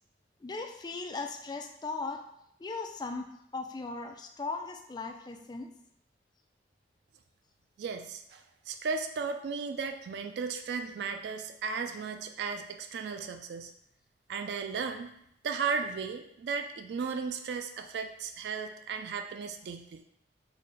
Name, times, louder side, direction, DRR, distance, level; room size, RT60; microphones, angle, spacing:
voice 1, 0.4-2.2 2.6-3.3 3.5-5.7, left 3 dB, 25° left, 4 dB, 0.3 m, -38 dB
voice 2, 7.8-13.7 14.3-15.1 15.4-20.0, right 5 dB, 70° right, 6 dB, 0.3 m, -35 dB
4.0 x 2.1 x 3.7 m, 0.75 s
head